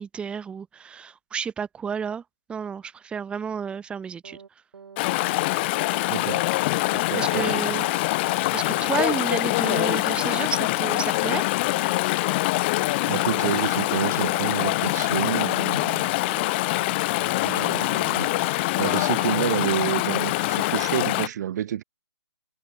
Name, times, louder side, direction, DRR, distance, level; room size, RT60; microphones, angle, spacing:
voice 1, 0.0-2.2 2.5-4.4 7.2-7.8 8.5-11.5, right 6 dB, 5° right, 1.4 m, -31 dB
sound 1, 4.2-4.5 4.7-5.0 5.2-5.5 5.7-6.0 6.2-6.5 6.7-7.0 7.2-7.5 7.7-8.0 8.2-8.5 8.7-9.0 9.2-9.5 9.7-10.0 10.2-10.5 10.7-11.0 11.2-11.5 11.7-12.0 12.2-12.5 12.7-13.0 13.2-13.5 13.7-14.0 14.2-14.5 14.7-15.0 15.2-15.5 15.7-16.0 16.2-16.5 16.7-17.0 17.2-17.5 17.7-18.0 18.2-18.5 18.7-19.0 19.2-19.5 19.7-20.0, right 6 dB, 65° right, 4.5 m, -45 dB
Chatter / Stream, 5.0-21.3, left 21 dB, 25° left, 0.9 m, -24 dB
voice 2, 6.1-6.5 6.9-8.0 13.1-16.1 17.4-18.3 18.8-21.8, right 11 dB, 40° right, 1.3 m, -29 dB
hypercardioid pair, 150°, 14 cm